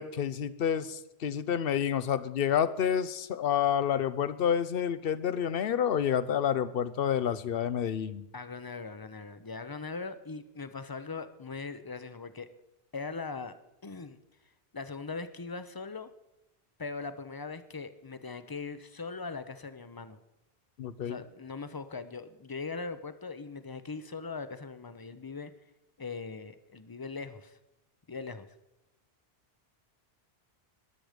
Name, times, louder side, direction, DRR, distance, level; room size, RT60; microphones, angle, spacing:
voice 1, 0.0-8.3 20.8-21.2, left 8 dB, 65° left, 16 dB, 0.9 m, -29 dB
voice 2, 8.3-12.5 12.9-13.5 13.8-14.2 14.7-16.1 16.8-20.2 21.0-25.5 26.0-27.6 28.1-28.5, left 4 dB, 25° left, 12 dB, 0.7 m, -40 dB
21.0 x 7.9 x 5.0 m, 0.90 s
omnidirectional pair, 1.1 m